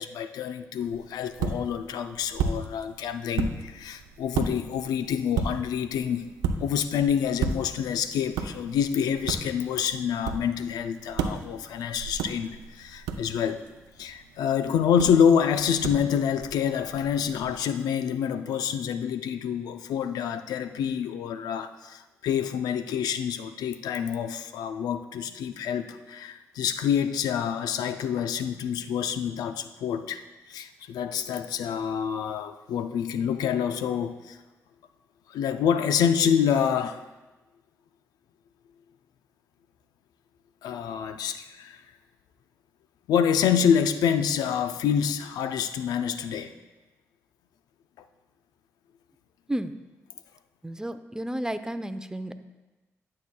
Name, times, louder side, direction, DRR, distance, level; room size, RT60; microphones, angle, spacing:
voice 1, 0.0-6.3 6.6-13.6 14.0-30.2 30.5-34.4 35.3-37.0 40.6-41.8 43.1-46.5, left 8 dB, 80° left, 10 dB, 0.4 m, -27 dB
sound 1, 0.8-17.5, right 5 dB, 90° right, 0.5 m, -35 dB
voice 2, 50.6-52.3, right 1 dB, 10° right, 10 dB, 0.6 m, -32 dB
11.5 x 7.4 x 2.2 m, 1.1 s
supercardioid pair, 45°, 7 cm